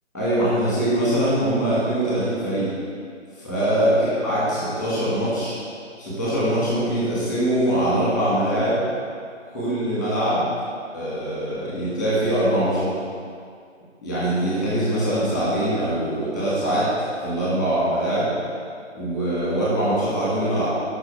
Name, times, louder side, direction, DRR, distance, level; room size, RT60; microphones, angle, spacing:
voice 1, 0.1-2.7 3.4-5.5 6.0-8.8 9.5-10.5 10.9-12.9 14.0-16.9 17.2-18.3 18.9-20.7, right 1 dB, ahead, -10 dB, 1.8 m, -22 dB
12.5 x 6.1 x 4.9 m, 2.2 s
hypercardioid pair, 175°, 37 cm